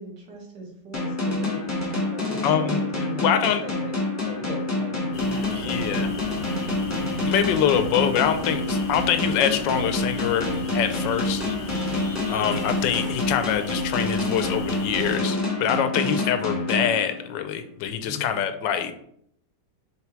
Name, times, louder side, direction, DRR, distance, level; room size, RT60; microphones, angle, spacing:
voice 1, 0.0-3.9 4.2-6.4 12.0-12.5 18.0-18.4, left 1 dB, 65° right, -2 dB, 2.2 m, -39 dB
sound 1, 0.9-17.5, left 2 dB, 10° left, 1.0 m, -27 dB
voice 2, 2.4-2.8 3.2-3.6 5.5-6.1 7.3-10.5 10.7-11.4 12.3-18.9, left 8 dB, 85° left, 9 dB, 1.3 m, -24 dB
sound 2, 5.1-15.2, left 4 dB, 70° left, 0.6 m, -40 dB
sound 3, 5.5-13.1, right 2 dB, 40° right, 0.9 m, -38 dB
5.9 x 3.5 x 4.5 m, 0.69 s
omnidirectional pair, 2.0 m